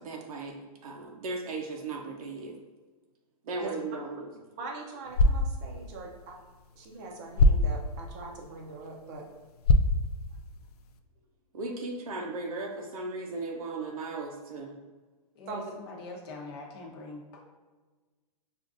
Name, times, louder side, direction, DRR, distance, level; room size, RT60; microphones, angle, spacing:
voice 1, 0.0-2.6 3.4-4.3 11.5-14.8, right 3 dB, 70° right, 1 dB, 0.6 m, -36 dB
voice 2, 4.6-6.4 6.8-9.2 15.5-15.7, right 3 dB, 30° right, 0 dB, 0.6 m, -41 dB
sound 1, 5.0-11.0, left 2 dB, 85° left, 0.4 m, -28 dB
voice 3, 15.3-17.6, left 3 dB, 40° left, -1 dB, 0.8 m, -44 dB
6.2 x 2.5 x 2.5 m, 1.3 s
hypercardioid pair, 165°, 19 cm